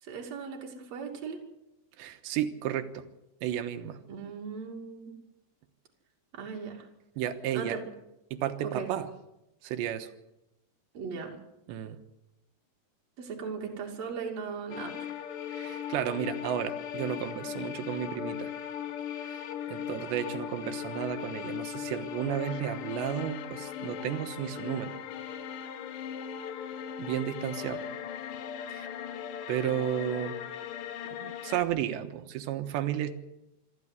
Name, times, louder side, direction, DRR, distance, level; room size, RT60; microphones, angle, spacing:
voice 1, 0.0-1.4 4.1-5.2 6.3-6.9 7.5-7.8 8.6-8.9 10.9-11.4 13.2-15.1, right 5 dB, 45° right, 1 dB, 3.3 m, -38 dB
voice 2, 2.0-3.1 3.4-4.0 7.2-7.8 8.3-9.1 9.6-10.1 11.7-12.0 15.5-18.5 19.2-25.0 27.0-27.8 28.7-28.9 29.5-30.4 31.2-33.1, right 10 dB, 85° right, 9 dB, 3.4 m, -33 dB
sound 1, 14.7-31.6, left 9 dB, 65° left, 2.3 m, -38 dB
26.0 x 12.5 x 8.2 m, 0.90 s
omnidirectional pair, 5.0 m